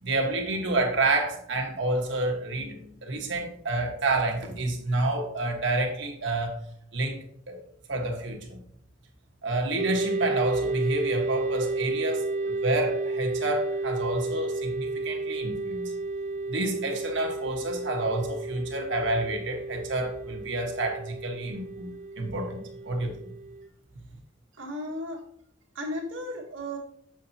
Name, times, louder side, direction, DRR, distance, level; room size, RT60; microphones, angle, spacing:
voice 1, 0.0-6.6 6.9-7.6 7.9-8.6 9.4-15.9 16.5-23.1, right 2 dB, 70° right, 2 dB, 1.4 m, -29 dB
sound 1, 9.8-23.7, right 3 dB, 40° right, 0.4 m, -32 dB
voice 2, 24.5-25.3 25.7-26.8, equal, 90° right, -2 dB, 1.9 m, -35 dB
7.5 x 6.5 x 2.8 m, 0.67 s
head